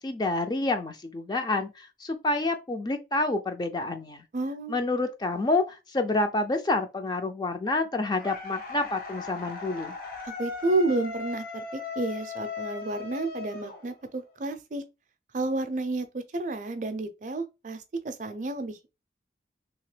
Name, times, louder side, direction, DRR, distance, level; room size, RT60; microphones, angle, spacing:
voice 1, 0.0-4.2 4.7-9.9, left 2 dB, 25° left, 0.4 m, -28 dB
voice 2, 4.3-4.8 10.2-14.8 15.3-18.9, right 2 dB, 45° right, 0.4 m, -31 dB
sound 1, 8.2-14.3, left 4 dB, 50° left, 0.8 m, -38 dB
2.9 x 2.9 x 3.2 m
head